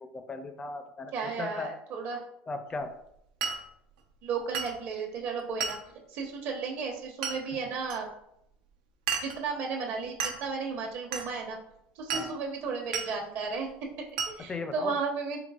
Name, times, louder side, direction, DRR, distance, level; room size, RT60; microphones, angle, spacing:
voice 1, 0.0-1.7 2.5-2.9 7.7-7.8 12.1-12.4 14.4-15.0, left 3 dB, 20° left, 8 dB, 0.4 m, -37 dB
voice 2, 1.1-2.2 4.2-5.8 6.1-8.1 9.2-11.6 12.0-13.7 14.3-15.4, right 5 dB, 60° right, 0 dB, 1.0 m, -34 dB
Glass, 3.4-3.6 4.5-4.8 5.6-5.9 7.2-7.4 7.9-8.0 9.1-9.4 10.2-10.4 11.1-11.3 12.1-12.3 12.9-13.1 14.2-14.4, right 6 dB, 90° right, 0.5 m, -32 dB
3.8 x 3.4 x 2.4 m, 0.78 s
supercardioid pair, 110°, 5 cm